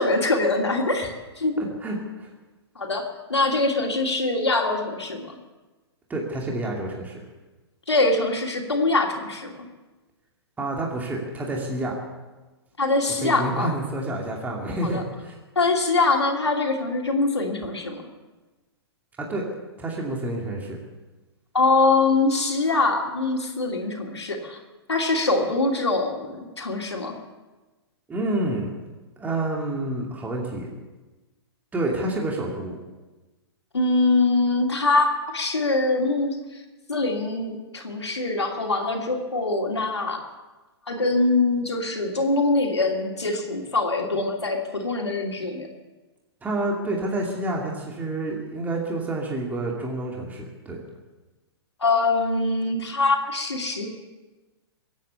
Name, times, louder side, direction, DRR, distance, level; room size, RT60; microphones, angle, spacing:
voice 1, 0.0-1.6 2.8-3.0 3.3-5.3 7.9-9.5 12.8-13.7 14.8-15.0 15.6-18.0 21.5-24.6 24.9-27.1 33.7-36.4 36.9-40.2 40.9-45.7 51.8-53.9, left 3 dB, 85° left, 1 dB, 2.7 m, -23 dB
voice 2, 1.6-2.3 6.1-7.2 10.6-12.0 13.2-15.4 19.2-19.4 19.8-20.8 28.1-28.7 29.2-30.7 31.7-32.8 46.4-50.8, right 2 dB, 10° right, -1 dB, 2.5 m, -28 dB
23.0 x 9.0 x 7.0 m, 1.2 s
figure-of-eight pair, 115°, 14 cm